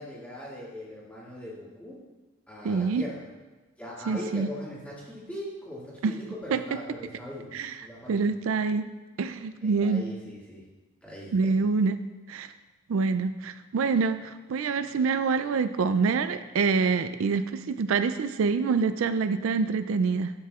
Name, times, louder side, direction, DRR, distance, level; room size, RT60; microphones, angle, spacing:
voice 1, 0.0-2.0 2.5-3.3 3.8-7.5 7.8-8.3 9.6-10.7 11.0-11.6, left 1 dB, 5° left, -6 dB, 2.1 m, -40 dB
voice 2, 2.6-3.0 4.1-4.5 6.0-6.1 6.5-6.6 7.5-7.7 8.1-8.8 9.2-10.0 11.3-12.0 12.3-12.5 12.9-20.3, right 4 dB, 80° right, 11 dB, 0.4 m, -26 dB
11.5 x 7.5 x 2.4 m, 1.2 s
head